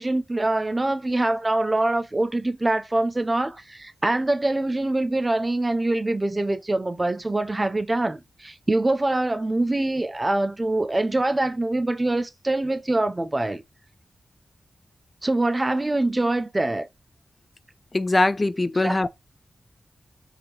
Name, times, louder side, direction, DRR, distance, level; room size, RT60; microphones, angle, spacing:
voice 1, 0.0-13.6 15.2-16.9 18.8-19.0, right 2 dB, 30° right, 0.7 m, -24 dB
voice 2, 17.9-19.1, left 2 dB, 35° left, 0.4 m, -21 dB
4.9 x 2.8 x 3.1 m
cardioid pair, 45°, 0 cm